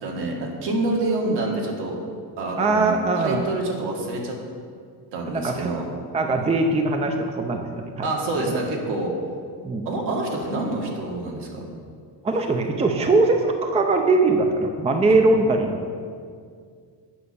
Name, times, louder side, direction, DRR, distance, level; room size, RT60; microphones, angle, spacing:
voice 1, 0.0-2.0 2.4-4.4 5.1-5.9 8.0-9.1 9.9-11.7 15.1-15.2, right 2 dB, 70° right, -1 dB, 2.0 m, -27 dB
voice 2, 2.6-3.5 5.3-5.7 6.1-8.1 9.6-9.9 12.2-15.8, right 3 dB, 15° right, 4 dB, 0.5 m, -21 dB
8.8 x 5.7 x 6.8 m, 2.1 s
cardioid pair, 140°, 42 cm